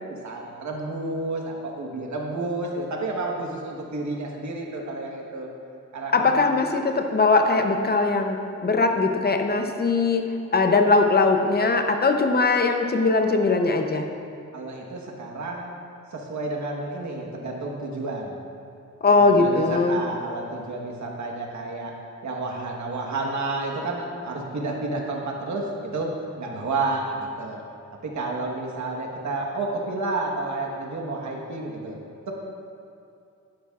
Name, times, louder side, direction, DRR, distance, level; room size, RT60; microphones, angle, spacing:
voice 1, 0.1-5.5 5.9-6.4 14.5-15.7 16.1-18.4 19.3-21.9 22.2-26.1 26.4-27.6 28.0-32.0 32.3-32.4, right 2 dB, 65° right, 0 dB, 1.3 m, -30 dB
voice 2, 6.1-10.2 10.5-14.1 19.0-20.0, left 3 dB, 30° left, 5 dB, 0.7 m, -20 dB
11.5 x 9.9 x 2.4 m, 2.6 s
wide cardioid pair, 130°, 31 cm